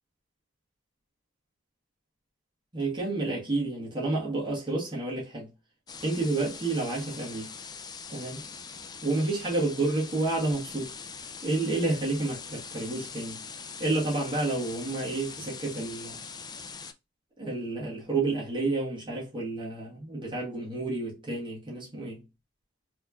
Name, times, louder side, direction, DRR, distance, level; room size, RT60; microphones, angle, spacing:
voice 1, 2.7-5.5 6.0-7.5 8.1-8.4 9.0-10.9 11.4-13.4 13.8-16.2 17.4-22.2, right 2 dB, 25° right, 1.5 m, -30 dB
sound 1, 5.9-16.9, left 5 dB, 20° left, 0.3 m, -42 dB
4.2 x 3.0 x 2.4 m
head